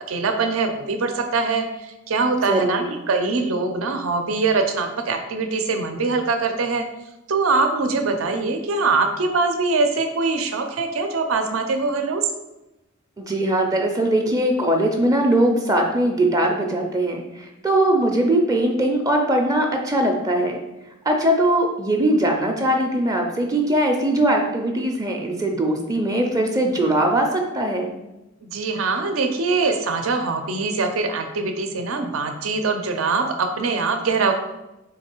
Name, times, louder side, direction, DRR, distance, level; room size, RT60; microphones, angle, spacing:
voice 1, 0.1-6.9 7.3-12.3 28.4-34.3, right 4 dB, 80° right, 5 dB, 0.5 m, -23 dB
voice 2, 2.5-2.8 13.2-20.6 21.1-27.9, right 1 dB, 15° right, 2 dB, 0.4 m, -21 dB
3.8 x 3.1 x 4.4 m, 0.97 s
head